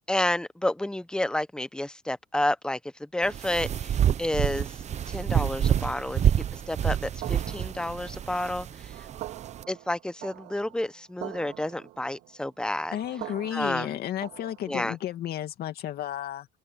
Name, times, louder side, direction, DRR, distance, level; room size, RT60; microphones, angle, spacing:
voice 1, 0.1-4.7 5.1-6.2 6.5-9.1 9.7-13.0 13.5-14.0 14.7-15.0, left 1 dB, 5° left, 1.0 m, -30 dB
sound 1, 3.2-9.6, right 9 dB, 40° right, 0.8 m, -28 dB
sound 2, 7.2-15.0, right 16 dB, 85° right, 2.9 m, -44 dB
voice 2, 12.9-16.5, left 12 dB, 65° left, 2.4 m, -33 dB
open air
cardioid pair, 110°, 17 cm